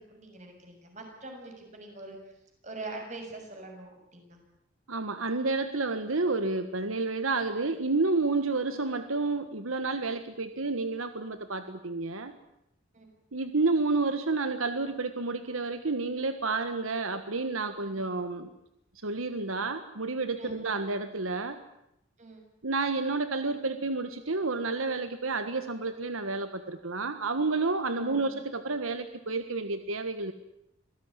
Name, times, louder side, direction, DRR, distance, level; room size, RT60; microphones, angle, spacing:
voice 1, 0.0-2.2 2.6-4.4 12.9-13.1 20.4-20.7 22.2-22.4 27.9-28.3, right 2 dB, 35° right, 3 dB, 6.8 m, -43 dB
voice 2, 4.9-12.3 13.3-18.5 19.0-21.6 22.6-30.3, right 3 dB, 85° right, 9 dB, 1.6 m, -30 dB
26.0 x 17.0 x 9.9 m, 0.81 s
head